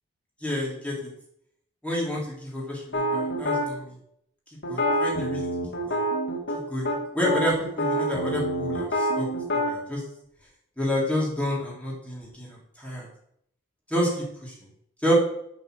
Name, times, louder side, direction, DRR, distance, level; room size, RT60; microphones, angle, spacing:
voice 1, 0.4-1.1 1.8-4.0 4.7-5.5 5.9-6.0 6.7-9.3 9.5-10.0 10.8-13.1 13.9-14.5 15.0-15.1, equal, 5° left, -5 dB, 3.0 m, -29 dB
sound 1, 2.9-3.7 4.6-6.6 6.8-7.0 7.2-9.7, equal, 60° left, 2.0 m, -26 dB
6.8 x 6.4 x 6.3 m, 0.72 s
head